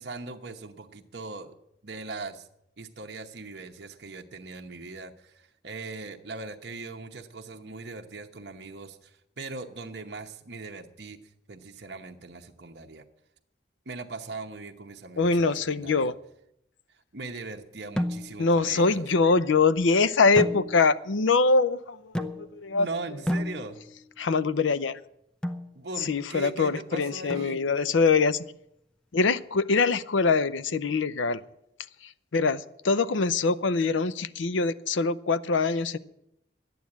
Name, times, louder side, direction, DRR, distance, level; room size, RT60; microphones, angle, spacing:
voice 1, 0.0-1.5 1.8-2.5 2.8-11.2 11.5-13.0 13.9-16.1 17.1-19.0 22.7-23.8 25.7-27.6, right 3 dB, 60° right, 3 dB, 0.9 m, -40 dB
voice 2, 15.2-16.1 18.4-22.9 24.2-25.0 26.0-28.4 29.1-31.4 32.0-36.0, left 4 dB, 85° left, 15 dB, 0.6 m, -24 dB
sound 1, 18.0-18.6 20.4-21.1 22.1-22.7 23.3-24.1 25.4-25.8 27.3-27.9, left 1 dB, 5° left, 0.6 m, -32 dB
12.0 x 9.3 x 8.5 m, 0.79 s
head